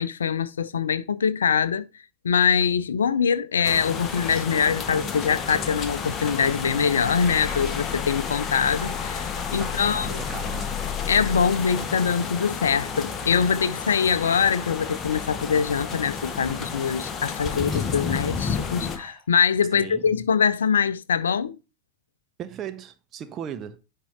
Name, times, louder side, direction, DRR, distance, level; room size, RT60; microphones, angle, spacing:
voice 1, 0.0-1.9 2.2-10.2 11.1-21.6, left 6 dB, 70° left, 0.5 m, -23 dB
sound 1, 3.6-19.0, left 6 dB, 25° left, 1.0 m, -31 dB
sound 2, 4.1-5.6 7.1-7.8 8.2-8.4 8.8-8.9 9.4-9.5 9.8-10.6 10.9-11.2 11.5-11.7 13.5-13.6 14.1-14.4 14.7-15.1 15.6-15.7 17.0-19.3, left 1 dB, 5° right, 4.5 m, -45 dB
voice 2, 9.6-10.9 19.7-20.2 22.4-23.8, right 9 dB, 30° right, 0.6 m, -37 dB
10.0 x 3.7 x 4.2 m
figure-of-eight pair, 90°, 0 cm